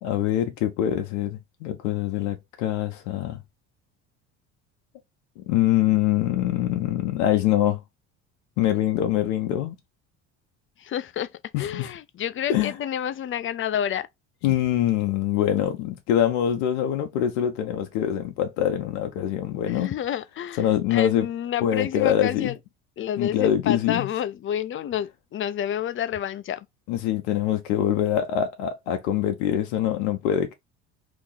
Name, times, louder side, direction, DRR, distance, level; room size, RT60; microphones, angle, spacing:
voice 1, 0.0-3.4 5.4-7.8 8.6-9.8 11.5-11.9 12.5-12.7 14.4-19.9 20.6-21.3 21.6-22.5 23.2-24.1 26.9-30.5, left 11 dB, 80° left, 0.8 m, -24 dB
voice 2, 10.8-11.3 11.6-14.1 19.7-20.6 20.9-22.5 23.0-26.7, left 10 dB, 35° left, 0.4 m, -29 dB
2.9 x 2.6 x 3.9 m
hypercardioid pair, 70°, 37 cm